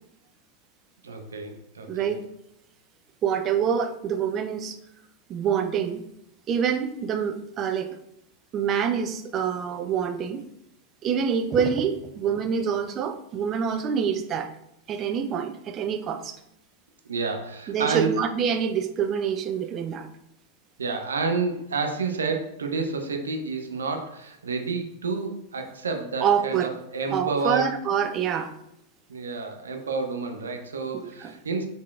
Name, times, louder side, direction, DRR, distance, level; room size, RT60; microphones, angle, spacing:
voice 1, 1.0-2.1 17.1-18.2 20.8-27.7 29.1-31.7, right 4 dB, 70° right, 4 dB, 0.6 m, -29 dB
voice 2, 1.9-2.2 3.2-4.8 5.3-6.1 6.5-8.0 8.5-10.5 11.0-14.5 14.9-16.4 17.7-20.1 26.2-26.7 27.1-28.5 31.0-31.3, right 7 dB, 30° right, 7 dB, 0.4 m, -26 dB
6.3 x 3.5 x 2.3 m, 0.78 s
figure-of-eight pair, 90°, 0 cm